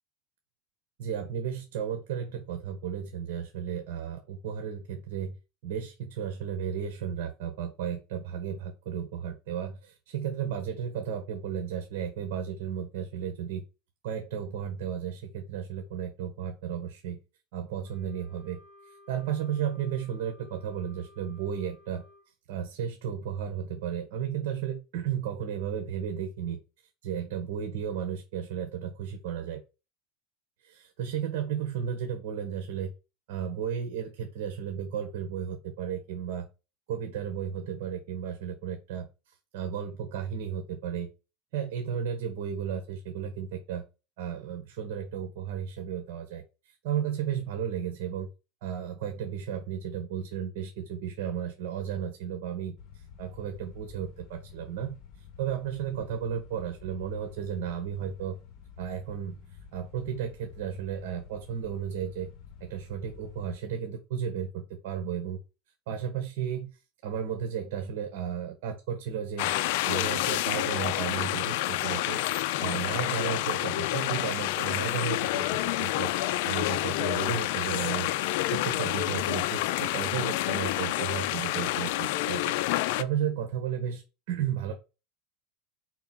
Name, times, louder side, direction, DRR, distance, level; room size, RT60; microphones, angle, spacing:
voice 1, 1.0-5.4 5.6-13.6 14.0-17.2 17.5-18.6 19.1-22.0 22.5-26.6 27.0-29.6 30.6-32.9 33.3-36.5 36.9-39.1 39.5-41.1 41.5-43.8 44.2-48.3 48.6-54.9 55.4-58.4 58.8-59.4 59.7-62.3 62.6-65.4 65.9-66.7 67.0-69.5 69.8-76.1 76.4-78.1 78.5-82.5 83.0-84.7, right 8 dB, 70° right, 5 dB, 1.6 m, -34 dB
Wind instrument woodwind instrument, 17.8-22.3, left 2 dB, 10° left, 1.2 m, -56 dB
sound 1, 52.8-63.6, left 7 dB, 45° left, 2.1 m, -50 dB
sound 2, 69.4-83.0, left 16 dB, 70° left, 0.5 m, -28 dB
5.1 x 4.6 x 6.0 m, 0.30 s
supercardioid pair, 130°, 0 cm